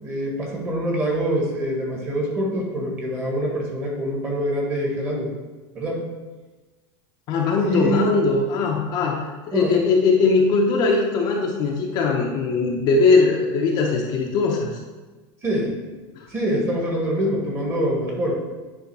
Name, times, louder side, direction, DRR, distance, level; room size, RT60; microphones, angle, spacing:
voice 1, 0.0-5.3 5.7-6.0 7.6-8.0 9.5-9.8 15.4-15.8 16.3-18.4, equal, 20° right, -2 dB, 1.6 m, -25 dB
voice 2, 7.3-14.7, left 4 dB, 35° left, 0 dB, 0.8 m, -20 dB
9.7 x 3.5 x 4.7 m, 1.2 s
supercardioid pair, 170°, 12 cm